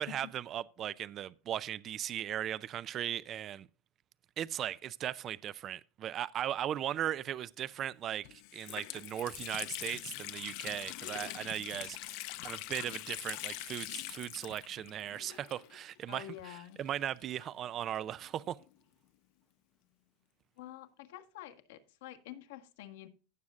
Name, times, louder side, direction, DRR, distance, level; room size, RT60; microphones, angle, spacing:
voice 1, 0.0-3.7 4.4-18.6, right 11 dB, 30° right, 0.4 m, -38 dB
Water tap faucet, 7.8-7.9 8.2-16.3 17.2-18.7, left 17 dB, 55° left, 0.6 m, -43 dB
voice 2, 16.1-16.8 20.6-23.1, left 13 dB, 75° left, 1.5 m, -48 dB
16.0 x 7.2 x 2.5 m
supercardioid pair, 135°, 0 cm